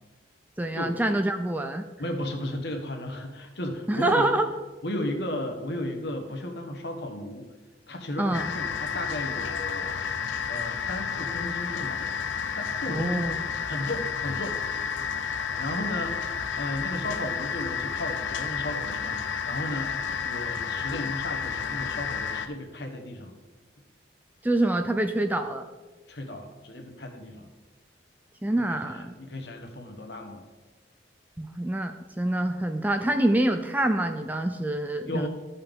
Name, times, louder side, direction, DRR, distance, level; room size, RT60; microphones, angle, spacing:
voice 1, 0.6-1.8 3.9-4.5 8.2-8.5 12.9-13.4 24.4-25.7 28.4-29.1 31.4-35.3, right 1 dB, 10° right, 6 dB, 0.4 m, -26 dB
voice 2, 2.0-4.4 4.8-7.5 7.9-9.9 10.5-12.0 12.5-13.3 13.6-15.1 15.6-16.2 16.5-19.9 20.2-23.4 26.1-27.5 28.9-30.5 35.0-35.3, left 1 dB, 60° left, 4 dB, 1.2 m, -34 dB
sound 1, 8.3-22.5, left 6 dB, 85° left, 0.6 m, -31 dB
13.5 x 5.5 x 3.6 m, 1.2 s
head